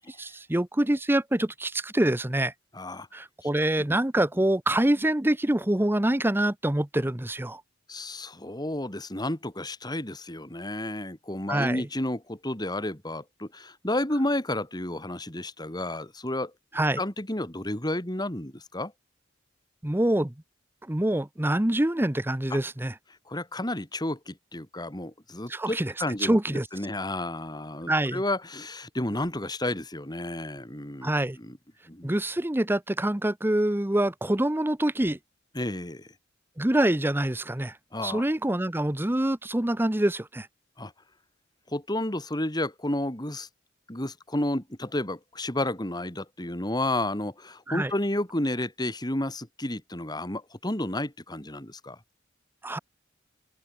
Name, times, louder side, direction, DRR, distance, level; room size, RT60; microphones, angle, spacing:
voice 1, 0.1-2.5 3.1-7.6 11.5-11.9 16.7-17.0 19.8-20.3 20.9-22.9 25.5-25.9 26.2-26.7 27.9-28.2 31.0-31.4 32.0-35.2 36.6-37.8 38.0-40.5 47.7-47.9 52.6-52.8, right 1 dB, 10° right, 0.8 m, -25 dB
voice 2, 2.7-3.1 3.9-4.0 7.9-16.5 17.0-18.9 22.5-22.6 23.3-31.1 31.4-31.6 31.9-32.1 35.5-36.1 37.9-38.2 40.8-40.9 41.7-43.5 43.9-52.0, left 1 dB, 20° left, 3.3 m, -31 dB
open air
head